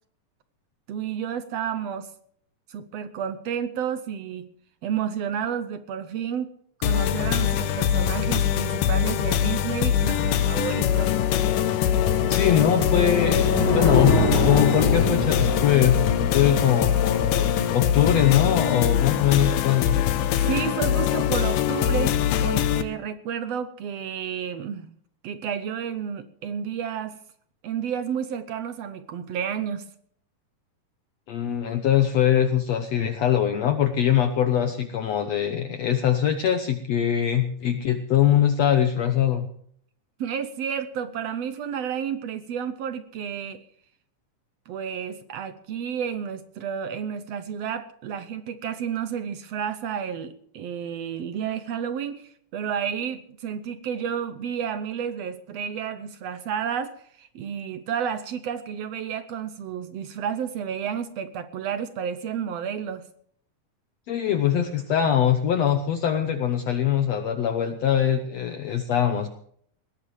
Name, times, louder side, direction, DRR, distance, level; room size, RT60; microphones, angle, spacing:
voice 1, 0.9-2.1 2.7-4.5 4.8-6.5 6.8-11.2 20.3-24.9 25.2-27.2 27.6-29.9 40.2-43.6 44.7-63.0, right 8 dB, 75° right, 11 dB, 1.6 m, -31 dB
sound 1, 6.8-22.8, left 10 dB, 85° left, 2.6 m, -23 dB
sound 2, 10.5-17.6, left 2 dB, 40° left, 2.8 m, -26 dB
voice 2, 12.3-13.5 13.7-14.1 14.5-16.0 16.3-20.0 31.3-39.5 64.1-69.3, left 10 dB, 65° left, 7 dB, 1.9 m, -22 dB
20.5 x 17.0 x 3.3 m, 0.63 s
omnidirectional pair, 3.8 m